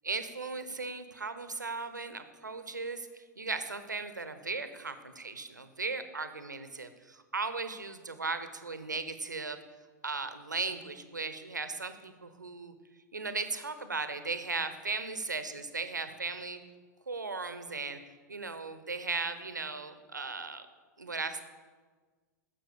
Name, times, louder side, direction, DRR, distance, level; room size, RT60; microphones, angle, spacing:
voice 1, 0.0-9.6 10.0-12.7 13.1-16.6 17.1-18.0 18.3-20.7 21.0-21.4, right 4 dB, 80° right, 10 dB, 1.0 m, -37 dB
12.5 x 7.5 x 6.8 m, 1.4 s
figure-of-eight pair, 95°, 10 cm